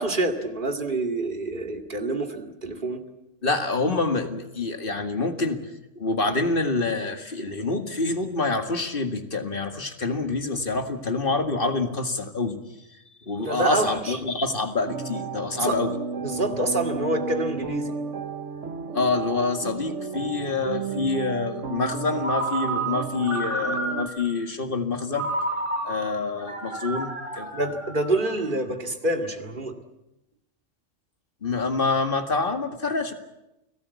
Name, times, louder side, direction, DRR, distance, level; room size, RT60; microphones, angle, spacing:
voice 1, 0.0-3.0 13.4-14.2 15.6-15.8 16.2-17.9 27.5-29.8, right 2 dB, 40° right, 5 dB, 2.4 m, -27 dB
voice 2, 3.4-5.6 6.0-12.6 13.3-15.9 18.9-25.3 25.8-27.5 31.4-33.1, left 3 dB, 45° left, 6 dB, 2.2 m, -26 dB
sound 1, 14.9-24.1, right 5 dB, 75° right, 1.6 m, -33 dB
Ringtone, 22.2-24.3 25.1-28.5, right 2 dB, 25° right, 5.4 m, -31 dB
29.5 x 17.5 x 8.4 m, 0.93 s
omnidirectional pair, 1.3 m